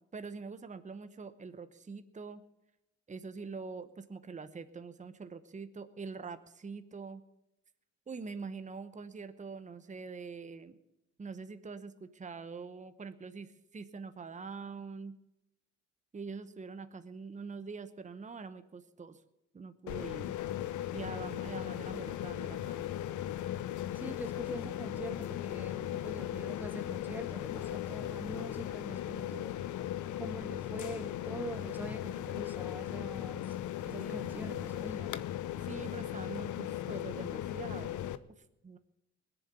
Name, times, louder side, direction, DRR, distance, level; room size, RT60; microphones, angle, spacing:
voice 1, 0.0-2.4 3.1-7.2 8.1-10.8 11.2-15.2 16.1-19.2 19.5-20.3 20.9-22.8 34.0-34.7 35.6-38.0 38.6-38.8, right 4 dB, 25° right, 10 dB, 1.0 m, -44 dB
sound 1, 19.9-38.2, left 12 dB, 75° left, 0.8 m, -37 dB
voice 2, 23.9-29.5 30.2-33.6 33.9-35.3, right 1 dB, 5° right, 6 dB, 2.0 m, -44 dB
20.5 x 7.1 x 8.3 m, 0.88 s
cardioid pair, 90°, 30 cm